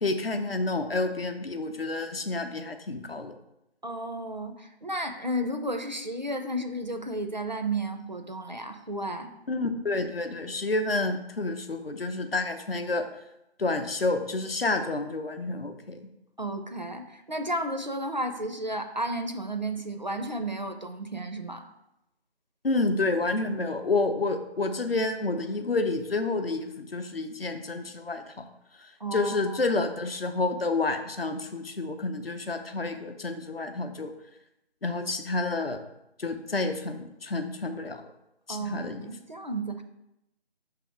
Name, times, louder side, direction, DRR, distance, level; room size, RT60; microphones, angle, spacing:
voice 1, 0.0-3.3 9.5-13.1 13.6-16.1 22.6-28.4 28.8-34.1 34.8-35.8 36.2-38.0 38.5-39.1, left 3 dB, 60° left, 7 dB, 0.7 m, -29 dB
voice 2, 3.8-9.3 16.4-21.7 29.0-29.6 38.5-39.8, right 1 dB, 45° right, 6 dB, 0.5 m, -33 dB
5.7 x 3.5 x 5.8 m, 0.86 s
figure-of-eight pair, 165°, 33 cm